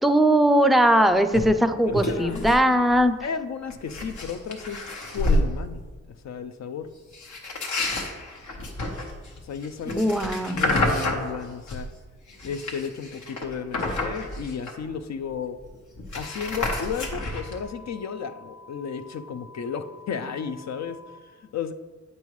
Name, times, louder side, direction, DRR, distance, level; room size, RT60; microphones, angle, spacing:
voice 1, 0.0-3.1 9.9-10.6, right 1 dB, ahead, 9 dB, 0.4 m, -20 dB
sound 1, 1.3-1.5 1.9-2.6 2.9-3.2 3.7-5.5 7.1-11.9 12.3-15.0 15.3-15.4 15.6-17.6, left 2 dB, 80° left, 1.1 m, -29 dB
voice 2, 1.9-2.4 3.2-4.9 5.1-5.8 6.2-6.9 9.4-11.9 12.4-15.6 16.2-21.7, left 6 dB, 65° left, 8 dB, 0.5 m, -33 dB
sound 2, 16.2-21.2, left 3 dB, 45° left, 1.1 m, -48 dB
8.3 x 5.4 x 3.1 m, 1.4 s
cardioid pair, 60°, 29 cm